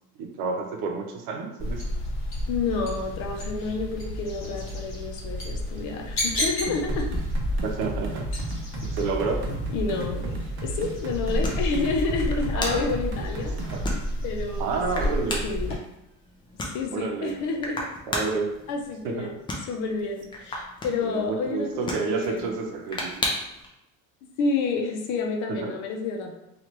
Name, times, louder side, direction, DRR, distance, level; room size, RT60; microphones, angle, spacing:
voice 1, 0.2-1.8 7.6-8.3 8.8-9.4 12.5-12.9 13.7-13.8 14.6-15.4 16.9-17.4 18.1-18.5 19.0-19.3 21.0-23.3 25.6-25.7, right 4 dB, 80° right, 2 dB, 0.7 m, -29 dB
sound 1, 1.6-15.8, left 1 dB, 40° left, 1.0 m, -32 dB
voice 2, 2.5-7.1 9.7-13.6 14.2-15.1 15.4-15.7 16.7-17.9 18.7-19.3 19.6-22.6 24.2-26.3, left 4 dB, 60° left, 2 dB, 0.6 m, -29 dB
sound 2, 6.7-13.9, right 2 dB, 40° right, 0.5 m, -33 dB
sound 3, 12.1-23.7, left 1 dB, 15° left, 0.4 m, -37 dB
3.0 x 2.4 x 2.9 m, 0.89 s
cardioid pair, 160°, 32 cm